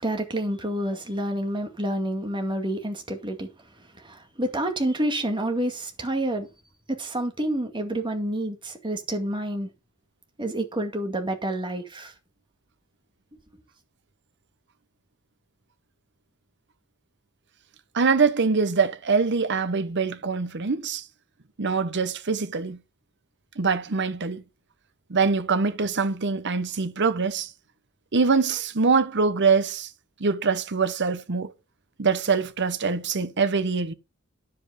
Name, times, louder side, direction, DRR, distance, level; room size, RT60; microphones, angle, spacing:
voice 1, 0.0-3.5 3.8-6.5 7.0-9.7 10.4-12.1, right 1 dB, 20° right, 2.1 m, -28 dB
voice 2, 17.9-21.0 21.6-22.8 23.6-24.4 25.1-27.5 28.1-29.9 30.2-31.5 32.0-33.9, right 4 dB, 55° right, 1.0 m, -24 dB
9.9 x 7.7 x 5.0 m
head